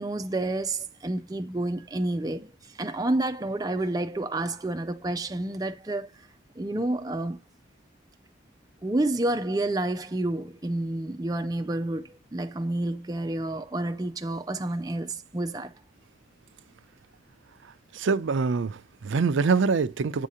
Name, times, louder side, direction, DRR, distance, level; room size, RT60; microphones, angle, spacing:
voice 1, 0.0-6.1 6.6-7.4 8.8-15.8, right 2 dB, 20° right, 0.4 m, -29 dB
voice 2, 17.9-20.3, right 4 dB, 75° right, 0.5 m, -24 dB
8.3 x 2.8 x 4.8 m
head